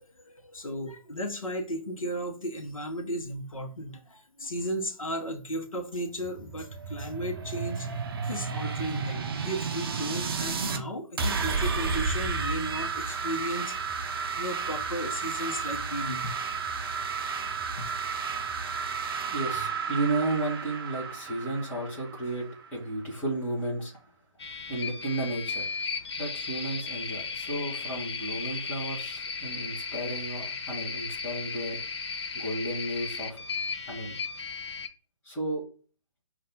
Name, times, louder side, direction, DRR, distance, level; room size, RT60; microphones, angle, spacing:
voice 1, 0.0-7.9 8.2-13.8 14.4-16.3 17.8-17.9, equal, 75° left, 0.8 m, -35 dB
sound 1, 6.2-10.8 11.2-22.7, right 5 dB, 45° right, 0.5 m, -32 dB
voice 2, 19.3-23.9 24.7-25.7 26.2-31.8 32.3-33.4 33.9-34.2 35.2-35.6, right 2 dB, 10° left, 1.1 m, -33 dB
sound 2, 24.4-34.9, left 5 dB, 50° left, 0.6 m, -35 dB
5.3 x 2.4 x 3.6 m
figure-of-eight pair, 140°, 17 cm